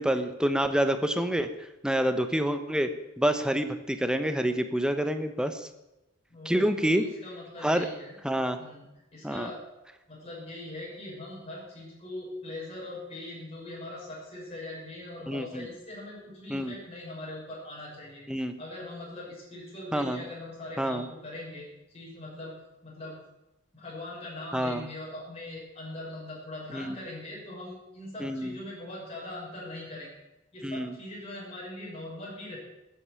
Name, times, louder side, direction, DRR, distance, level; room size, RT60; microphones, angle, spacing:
voice 1, 0.0-1.5 1.8-5.7 6.4-7.1 7.6-7.9 8.2-8.6 9.2-9.5 15.3-15.7 16.5-16.7 18.3-18.6 19.9-20.2 20.8-21.1 24.5-24.8 26.7-27.0 28.2-28.5 30.6-30.9, right 1 dB, 5° right, 8 dB, 1.0 m, -27 dB
voice 2, 6.3-8.2 8.6-9.6 10.1-18.2 18.6-22.5 22.8-23.2 23.7-30.1 30.5-32.6, left 1 dB, 30° left, -5 dB, 6.1 m, -41 dB
15.0 x 9.2 x 8.9 m, 0.95 s
head